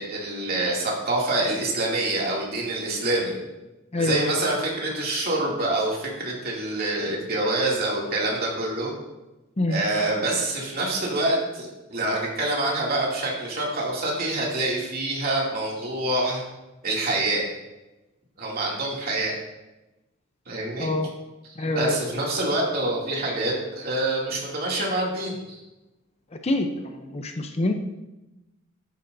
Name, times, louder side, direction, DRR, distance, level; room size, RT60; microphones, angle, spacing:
voice 1, 0.0-3.4 4.0-8.9 9.7-16.4 16.8-17.4 18.4-19.4 20.5-20.9 21.6-25.6, right 2 dB, 45° right, -3 dB, 2.5 m, -26 dB
voice 2, 3.9-4.4 9.6-9.8 20.8-21.1 21.6-22.0 26.4-27.7, left 2 dB, 30° left, 6 dB, 0.6 m, -25 dB
11.0 x 9.3 x 2.7 m, 1.0 s
head